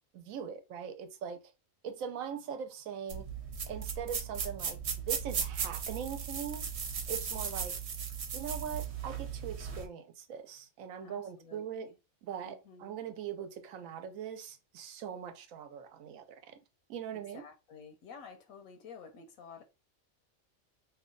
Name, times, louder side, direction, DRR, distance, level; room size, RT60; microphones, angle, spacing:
voice 1, 0.1-1.4 1.8-3.2 3.7-4.8 5.1-6.6 7.1-7.7 8.3-11.9 12.2-16.6 16.9-17.4, right 8 dB, 80° right, 1.0 m, -41 dB
sound 1, 3.1-9.9, right 7 dB, 60° right, 0.9 m, -37 dB
voice 2, 11.0-12.0 12.4-13.0 17.1-19.6, left 6 dB, 85° left, 1.1 m, -51 dB
3.0 x 2.2 x 3.7 m
omnidirectional pair, 1.4 m